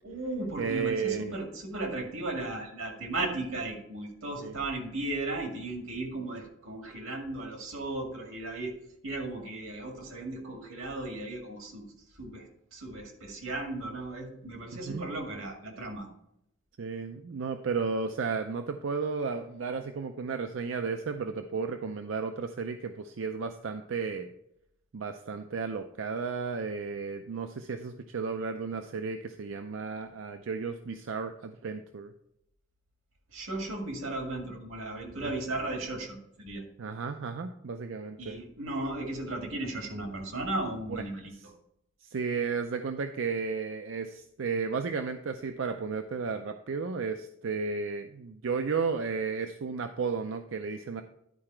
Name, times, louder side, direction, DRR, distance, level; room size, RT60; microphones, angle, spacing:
voice 1, 0.0-8.7 9.0-11.9 12.2-16.1 33.3-36.6 38.2-41.3, right 2 dB, 85° right, 2 dB, 1.9 m, -36 dB
voice 2, 0.6-1.3 4.4-4.5 14.9-15.0 16.8-24.3 24.9-32.1 35.2-35.3 36.8-38.4 40.9-41.0 41.3-41.4 42.0-51.0, right 5 dB, 65° right, 7 dB, 0.5 m, -33 dB
10.5 x 4.8 x 4.4 m, 0.78 s
head